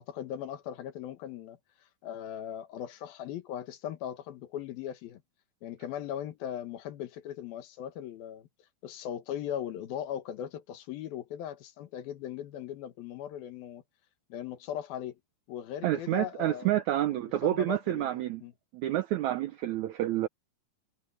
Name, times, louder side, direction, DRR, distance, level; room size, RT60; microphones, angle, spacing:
voice 1, 0.0-1.6 2.0-5.2 5.6-8.5 8.8-13.8 14.3-15.2 15.5-16.8 17.1-18.5, left 10 dB, 80° left, 3.2 m, -39 dB
voice 2, 15.8-18.4 18.7-20.3, right 14 dB, 85° right, 1.6 m, -29 dB
omnidirectional pair, 4.2 m